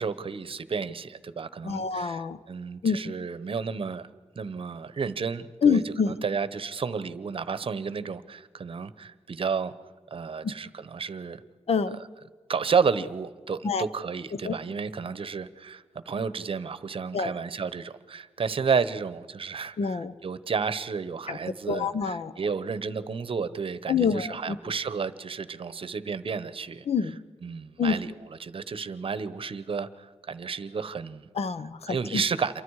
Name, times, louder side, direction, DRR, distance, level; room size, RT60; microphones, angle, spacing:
voice 1, 0.0-4.1 4.4-9.7 10.1-11.4 12.5-26.8 27.4-28.1 28.4-31.3 31.9-32.6, right 5 dB, 55° right, 15 dB, 1.0 m, -31 dB
voice 2, 1.6-2.4 2.8-3.0 5.6-6.1 10.4-10.5 11.7-12.0 13.6-13.8 14.4-14.5 17.1-17.3 19.8-20.1 21.3-21.4 21.7-22.3 23.9-24.6 26.9-27.2 27.8-28.0 31.3-32.2, left 6 dB, 65° left, 13 dB, 1.0 m, -26 dB
28.0 x 24.0 x 4.8 m, 1.4 s
wide cardioid pair, 140°, 11 cm